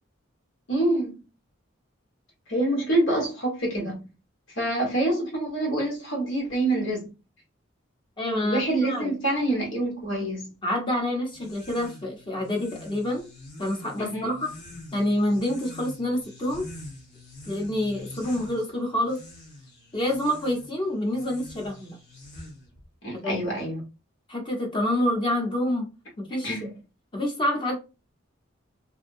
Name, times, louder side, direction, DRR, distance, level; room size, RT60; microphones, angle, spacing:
voice 1, 0.7-1.2 2.5-4.1 4.6-7.1 8.4-10.5 14.0-14.4 23.0-23.8 26.4-26.7, right 1 dB, 85° left, 1.4 m, -26 dB
voice 2, 8.2-9.1 10.6-13.3 13.6-14.5 14.9-16.7 17.5-19.2 19.9-22.0 23.1-23.4 24.3-25.9 26.2-26.5 27.1-27.8, left 1 dB, 25° left, 0.8 m, -27 dB
sound 1, 11.3-22.8, left 1 dB, 60° left, 1.1 m, -45 dB
2.6 x 2.2 x 2.6 m
head